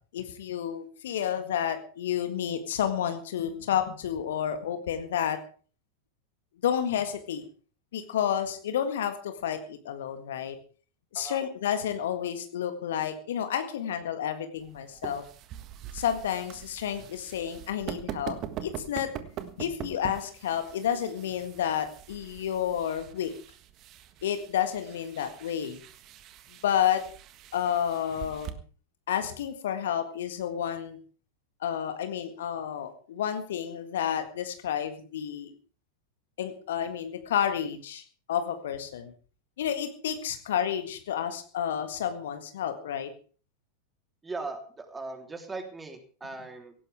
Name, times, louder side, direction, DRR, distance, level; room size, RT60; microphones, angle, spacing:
voice 1, 0.1-5.4 6.6-7.4 7.9-10.6 11.1-15.3 15.9-19.1 19.6-23.3 24.2-25.8 26.6-27.1 27.5-28.6 29.1-31.0 31.6-35.5 36.4-38.0 38.3-39.1 39.6-43.1, left 9 dB, 60° left, 8 dB, 1.7 m, -30 dB
sound 1, 14.6-28.5, right 11 dB, 35° right, 1.5 m, -43 dB
voice 2, 44.2-46.7, right 3 dB, 10° right, 4 dB, 3.4 m, -39 dB
17.5 x 16.5 x 3.5 m, 0.40 s
figure-of-eight pair, 90°, 0 cm